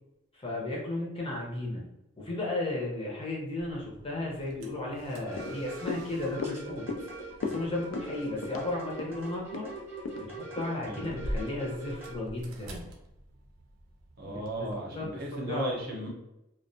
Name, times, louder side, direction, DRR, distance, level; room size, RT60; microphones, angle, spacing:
voice 1, 0.3-1.9 2.2-6.9 7.4-9.7 10.2-12.8 14.2-14.3 14.6-15.7, left 2 dB, 25° left, -3 dB, 0.6 m, -34 dB
sound 1, 3.6-14.7, equal, 85° right, 0.5 m, -46 dB
Footsteps on tile walking to distance, 5.3-11.8 12.2-12.3, left 4 dB, 65° left, 0.3 m, -39 dB
sound 2, 5.3-12.2, right 2 dB, 10° right, 0.7 m, -42 dB
voice 2, 10.8-11.2 14.2-16.1, right 1 dB, 50° right, -1 dB, 0.7 m, -36 dB
2.3 x 2.1 x 2.6 m, 0.90 s
head